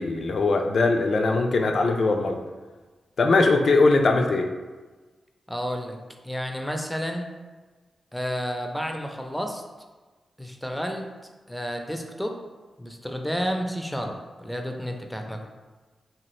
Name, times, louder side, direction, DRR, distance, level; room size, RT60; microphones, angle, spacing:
voice 1, 0.0-2.4 3.2-4.5, left 3 dB, 65° left, 4 dB, 0.3 m, -21 dB
voice 2, 5.5-6.0 6.2-7.3 8.1-9.6 10.4-11.1 11.5-12.3 12.8-15.4, equal, ahead, 3 dB, 0.5 m, -31 dB
2.8 x 2.4 x 3.1 m, 1.3 s
cardioid pair, 55°, 0 cm